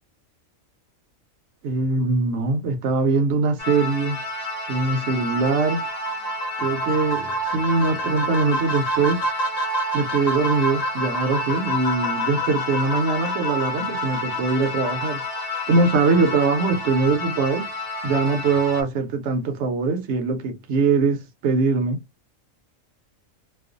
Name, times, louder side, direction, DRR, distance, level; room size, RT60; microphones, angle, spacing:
voice 1, 1.6-4.2 4.7-5.8 6.6-9.3 9.9-15.2 15.7-17.7 18.0-22.0, right 4 dB, 70° right, 0.8 m, -22 dB
sound 1, 3.6-18.8, left 1 dB, 50° left, 0.9 m, -30 dB
sound 2, 5.9-16.9, left 1 dB, 80° left, 0.3 m, -30 dB
2.4 x 2.2 x 2.5 m
omnidirectional pair, 1.4 m